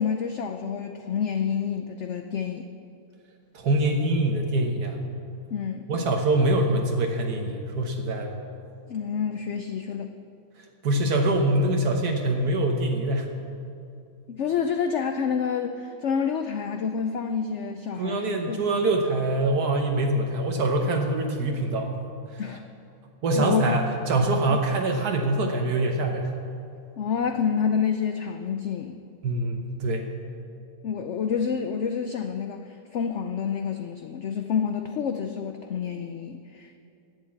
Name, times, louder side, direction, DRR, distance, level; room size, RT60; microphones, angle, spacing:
voice 1, 0.0-2.7 5.5-5.9 8.9-10.1 14.3-18.6 22.4-22.6 23.4-23.8 24.5-24.6 27.0-29.0 30.8-36.7, left 7 dB, 60° left, 6 dB, 0.8 m, -28 dB
voice 2, 3.5-5.0 5.9-8.3 10.8-13.3 18.0-21.9 22.3-22.4 23.2-26.3 29.2-30.1, right 2 dB, 80° right, 2 dB, 1.6 m, -24 dB
11.5 x 8.1 x 8.5 m, 2.6 s
omnidirectional pair, 1.6 m